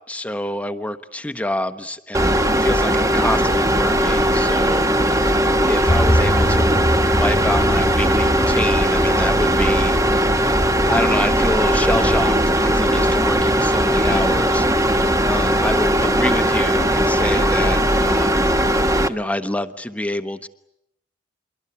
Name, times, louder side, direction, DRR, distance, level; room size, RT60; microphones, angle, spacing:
voice 1, 0.1-4.8 5.2-10.0 10.9-12.4 12.6-18.5 19.1-20.5, left 1 dB, 5° left, 9 dB, 1.0 m, -26 dB
sound 1, 2.1-19.1, right 1 dB, 15° right, 1.1 m, -18 dB
sound 2, 5.9-17.4, equal, 30° left, 1.4 m, -27 dB
27.0 x 23.0 x 8.5 m, 0.81 s
head